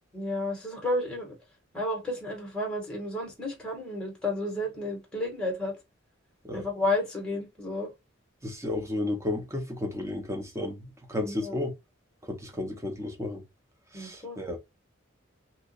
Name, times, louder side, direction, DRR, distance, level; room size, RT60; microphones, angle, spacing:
voice 1, 0.1-1.3 1.7-5.7 6.5-7.9 11.2-11.6 13.9-14.4, left 1 dB, 5° left, 1.0 m, -31 dB
voice 2, 8.4-11.7 12.3-13.4 13.9-14.6, left 2 dB, 15° right, 0.8 m, -33 dB
2.9 x 2.3 x 3.9 m
head